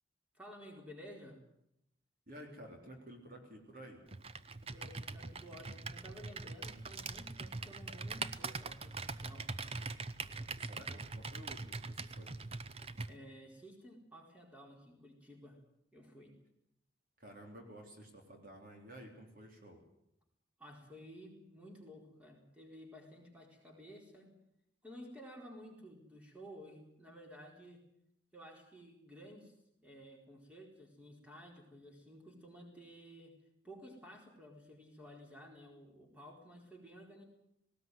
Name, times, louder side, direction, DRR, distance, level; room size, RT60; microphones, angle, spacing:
voice 1, 0.3-1.4 4.7-9.5 13.1-15.6 15.9-16.3 20.6-24.3 24.8-27.8 28.3-29.5 29.8-33.4 33.6-37.2, equal, 5° right, 0 dB, 4.5 m, -54 dB
voice 2, 2.3-4.0 10.6-12.3 17.2-19.8, equal, 50° right, 2 dB, 3.6 m, -52 dB
Computer keyboard, 4.1-13.1, right 4 dB, 30° right, 0.8 m, -43 dB
19.0 x 18.0 x 9.4 m, 0.80 s
head